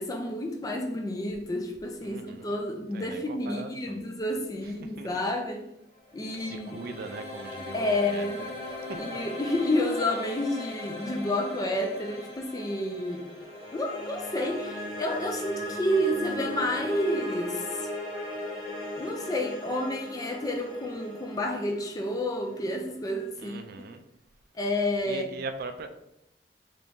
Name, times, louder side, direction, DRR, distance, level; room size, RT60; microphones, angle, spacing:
voice 1, 0.0-5.7 6.1-6.8 7.7-8.4 9.0-13.3 13.7-17.9 19.0-23.9 24.6-25.3, left 1 dB, 20° left, 0.4 m, -30 dB
voice 2, 2.0-2.5 2.9-4.0 4.6-5.1 6.4-8.3 8.7-9.2 23.4-24.0 25.1-25.9, right 3 dB, 55° right, 0.3 m, -40 dB
sound 1, 6.0-23.1, left 1 dB, 55° left, 1.5 m, -38 dB
3.5 x 3.0 x 2.6 m
head